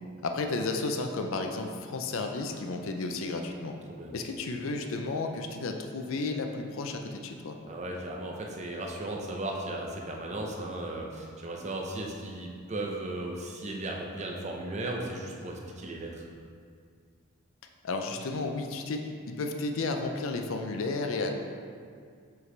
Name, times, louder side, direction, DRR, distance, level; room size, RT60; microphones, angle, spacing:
voice 1, 0.2-3.8 4.1-7.6 17.8-21.4, left 3 dB, 65° left, 4 dB, 0.5 m, -32 dB
voice 2, 7.7-16.2, right 1 dB, 30° right, 0 dB, 0.7 m, -36 dB
7.2 x 4.7 x 3.3 m, 2.1 s
head